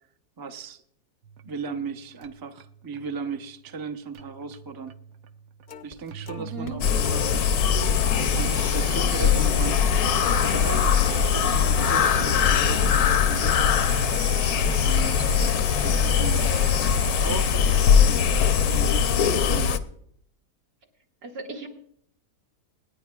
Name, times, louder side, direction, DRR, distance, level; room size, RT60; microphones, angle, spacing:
voice 1, 0.4-0.8 1.4-4.9 5.8-7.4 8.2-9.9 10.3-13.6 14.8-15.4 15.7-16.5 16.9-19.9, right 5 dB, 25° right, 7 dB, 0.5 m, -37 dB
sound 1, 1.2-19.3, right 8 dB, 65° right, 1.0 m, -41 dB
sound 2, 5.7-6.0 6.3-11.9 12.2-12.5 12.7-13.6, left 5 dB, 50° left, 0.7 m, -42 dB
voice 2, 6.4-6.8 21.2-21.7, right 2 dB, 85° right, 0 dB, 2.5 m, -36 dB
sound 3, 6.8-19.8, left 7 dB, 70° left, 1.1 m, -21 dB
26.5 x 9.8 x 2.3 m, 0.67 s
omnidirectional pair, 1.7 m